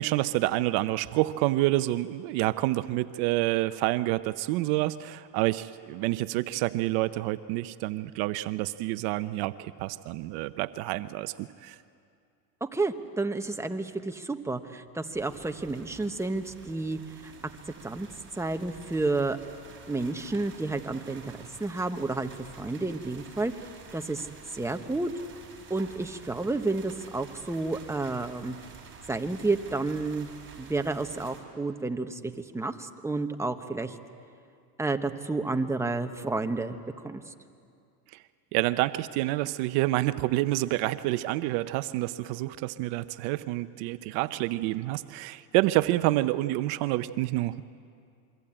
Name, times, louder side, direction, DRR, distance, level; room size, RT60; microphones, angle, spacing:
voice 1, 0.0-11.8 38.1-38.2 38.5-47.6, right 17 dB, 55° right, 13 dB, 0.8 m, -28 dB
voice 2, 12.6-17.3 17.8-18.1 18.3-19.4 19.9-21.2 21.6-22.3 22.6-23.5 23.9-24.3 24.5-25.1 25.7-28.6 29.1-30.3 30.6-34.0 34.8-36.8 37.0-37.3, right 3 dB, 5° right, 6 dB, 1.2 m, -30 dB
sound 1, 15.1-31.4, right 6 dB, 25° right, 5.8 m, -50 dB
27.5 x 23.5 x 8.8 m, 2.4 s
supercardioid pair, 120°, 48 cm